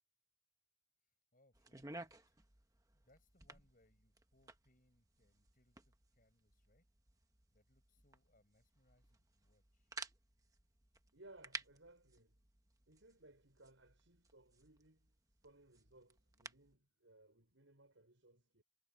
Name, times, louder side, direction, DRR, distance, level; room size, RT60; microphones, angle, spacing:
voice 1, 1.0-2.4 2.9-6.9 7.5-9.9, left 1 dB, 45° left, 7.8 m, -75 dB
sound 1, 1.5-16.8, right 3 dB, 15° right, 1.1 m, -56 dB
voice 2, 11.1-12.5 12.9-15.2 15.4-18.6, right 2 dB, 75° right, 5.8 m, -64 dB
head